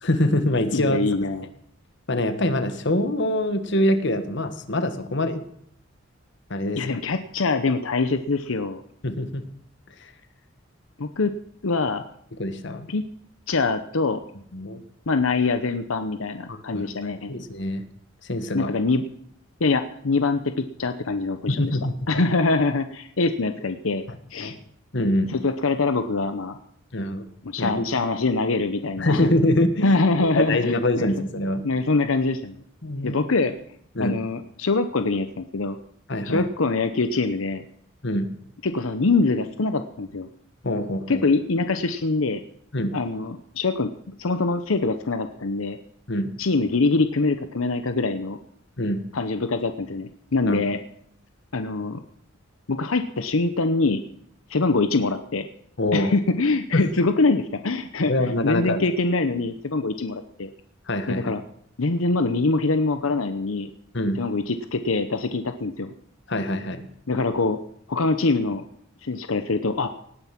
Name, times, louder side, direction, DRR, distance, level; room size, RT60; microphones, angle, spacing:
voice 1, 0.0-1.0 2.1-5.4 6.5-7.0 9.0-9.4 10.0-10.1 12.4-12.9 14.5-14.8 16.5-17.8 18.2-18.7 21.5-21.9 24.1-24.2 24.4-24.5 24.9-25.3 26.9-27.3 27.6-27.9 29.0-30.0 30.3-31.6 32.8-33.2 33.9-34.2 36.1-36.5 38.0-38.3 40.6-41.2 42.7-42.9 46.1-46.3 48.8-49.0 50.5-50.6 55.8-56.1 56.7-56.8 58.0-58.8 60.9-61.3 63.9-64.2 66.3-66.8, left 1 dB, 60° left, 10 dB, 1.5 m, -24 dB
voice 2, 0.7-1.5 6.8-8.8 11.0-11.3 11.6-12.0 12.9-13.0 13.5-14.2 15.1-17.3 18.5-19.0 19.6-20.5 20.8-21.8 22.1-24.0 24.3-24.5 25.3-26.6 27.4-29.3 29.8-31.1 31.6-32.6 33.0-33.6 34.0-35.8 36.3-37.6 38.6-40.3 41.1-42.4 42.9-43.9 44.2-45.8 46.4-48.4 49.1-50.8 51.5-52.0 52.7-54.0 54.5-55.5 55.9-60.5 61.1-61.4 61.8-63.7 64.2-65.9 67.1-67.6 67.9-68.6 69.0-69.9, left 3 dB, 90° left, 9 dB, 0.9 m, -24 dB
18.0 x 9.7 x 5.9 m, 0.68 s
head